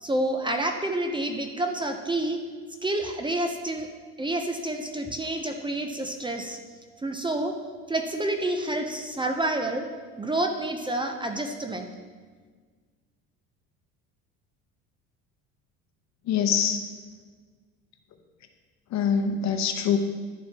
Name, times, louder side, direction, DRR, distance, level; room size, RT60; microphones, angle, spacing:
voice 1, 0.0-2.4 2.8-3.9 4.2-6.6 7.0-7.5 7.9-9.8 10.2-11.9, right 1 dB, 15° right, 4 dB, 0.6 m, -28 dB
voice 2, 16.2-16.8 18.9-20.0, left 7 dB, 55° left, 6 dB, 0.8 m, -24 dB
11.0 x 4.3 x 2.9 m, 1.5 s
supercardioid pair, 85°, 34 cm